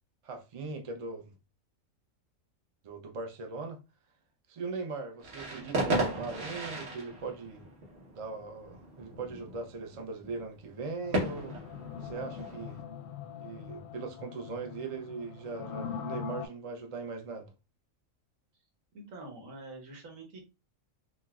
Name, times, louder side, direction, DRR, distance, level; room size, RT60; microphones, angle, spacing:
voice 1, 0.2-1.3 2.8-3.8 4.5-7.6 8.1-11.6 12.0-12.8 13.4-17.5, right 4 dB, 45° right, 0.4 m, -40 dB
sound 1, 5.2-12.8, right 2 dB, 65° right, 1.5 m, -36 dB
sound 2, 11.0-16.5, left 8 dB, 65° left, 0.8 m, -42 dB
voice 2, 18.9-20.4, right 2 dB, 85° right, 1.4 m, -46 dB
4.0 x 2.3 x 2.3 m
omnidirectional pair, 1.4 m